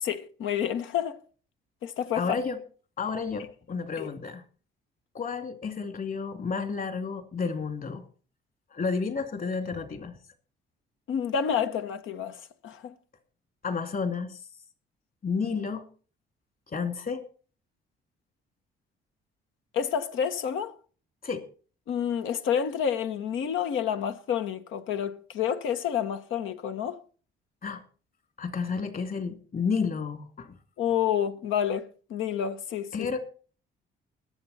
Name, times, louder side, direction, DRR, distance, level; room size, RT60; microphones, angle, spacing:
voice 1, 0.0-1.2 1.8-2.4 4.0-4.1 11.1-12.9 19.7-20.7 21.9-27.0 30.8-33.1, left 8 dB, 80° left, 1.1 m, -29 dB
voice 2, 2.1-2.6 3.0-4.4 5.1-8.0 8.7-10.2 13.6-14.4 15.2-15.8 16.7-17.3 21.2-21.4 27.6-27.8 28.4-30.6 32.9-33.2, left 5 dB, 45° left, 2.5 m, -31 dB
21.0 x 7.4 x 4.1 m
cardioid pair, 90°, 20 cm